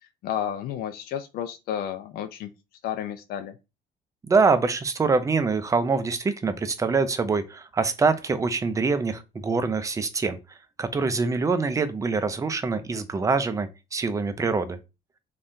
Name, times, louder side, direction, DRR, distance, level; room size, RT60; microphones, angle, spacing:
voice 1, 0.2-2.5 2.8-3.6, left 9 dB, 65° left, 0.4 m, -31 dB
voice 2, 4.3-10.4 10.8-14.8, right 4 dB, 20° right, 0.4 m, -24 dB
3.5 x 2.3 x 2.6 m
cardioid pair, 110°, 17 cm